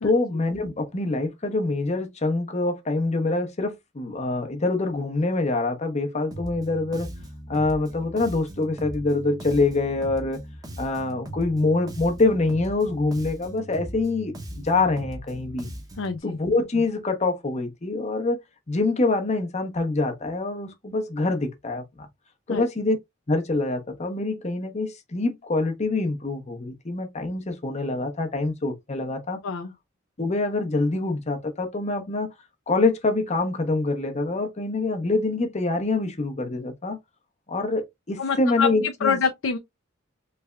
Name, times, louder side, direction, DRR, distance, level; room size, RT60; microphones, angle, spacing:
voice 1, 0.0-7.1 7.5-10.4 10.8-14.3 14.6-15.7 16.2-18.4 18.7-22.1 22.5-23.0 23.3-29.4 30.2-32.3 32.7-37.0 37.5-39.2, left 3 dB, 35° left, 0.7 m, -25 dB
Bass guitar, 6.3-16.2, equal, 20° right, 0.7 m, -39 dB
voice 2, 16.0-16.4 22.5-22.6 29.4-29.7 38.2-39.6, left 5 dB, 90° left, 0.5 m, -26 dB
3.4 x 3.3 x 2.3 m
head